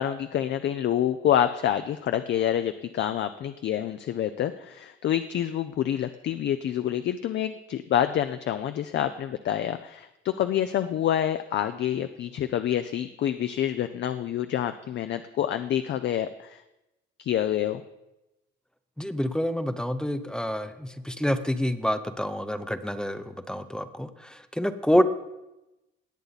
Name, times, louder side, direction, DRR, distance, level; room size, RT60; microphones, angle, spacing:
voice 1, 0.0-16.6 17.2-17.8, left 10 dB, 60° left, 10 dB, 0.6 m, -27 dB
voice 2, 19.0-24.1 24.6-25.0, equal, 5° left, 11 dB, 0.7 m, -27 dB
18.5 x 8.4 x 4.1 m, 0.95 s
cardioid pair, 135°, 21 cm